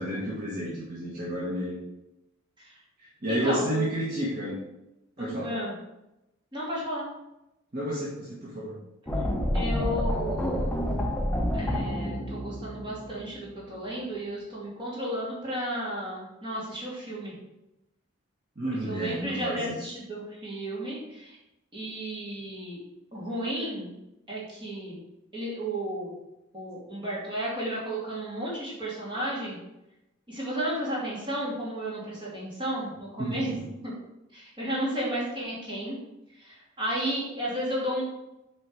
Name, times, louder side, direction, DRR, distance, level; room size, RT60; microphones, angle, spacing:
voice 1, 0.0-1.8 3.0-4.6 5.2-5.5 7.7-8.8 18.5-19.8 33.2-33.6, equal, 45° right, -6 dB, 1.5 m, -31 dB
voice 2, 3.3-3.8 5.2-5.7 6.5-7.0 9.5-10.8 11.5-17.4 18.9-21.4 21.7-22.8 23.1-24.0 24.3-25.0 25.3-26.1 26.5-29.6 30.3-33.6 33.8-33.9 34.3-36.0 36.4-38.0, right 1 dB, 25° right, -6 dB, 2.8 m, -33 dB
sound 1, 9.1-14.0, equal, 10° left, 0.7 m, -29 dB
8.0 x 4.4 x 4.7 m, 0.93 s
head